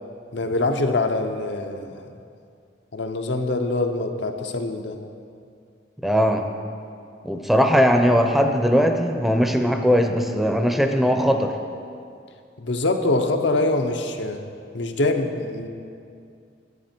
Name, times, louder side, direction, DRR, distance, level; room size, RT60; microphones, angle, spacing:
voice 1, 0.3-1.9 2.9-5.0 12.6-14.4 14.7-15.7, left 2 dB, 90° left, 5 dB, 0.8 m, -24 dB
voice 2, 6.0-6.5 7.2-11.6, equal, ahead, 5 dB, 0.5 m, -19 dB
11.0 x 8.8 x 4.4 m, 2.4 s
head